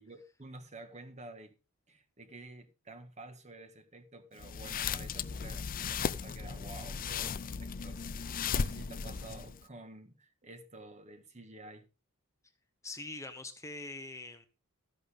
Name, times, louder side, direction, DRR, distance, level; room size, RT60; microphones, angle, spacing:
voice 1, 0.0-1.5 1.9-11.9, right 2 dB, 30° right, 1.7 m, -50 dB
sound 1, 4.4-9.6, left 6 dB, 40° left, 0.5 m, -36 dB
voice 2, 12.8-14.5, left 2 dB, 15° left, 1.0 m, -43 dB
13.5 x 11.0 x 3.6 m
head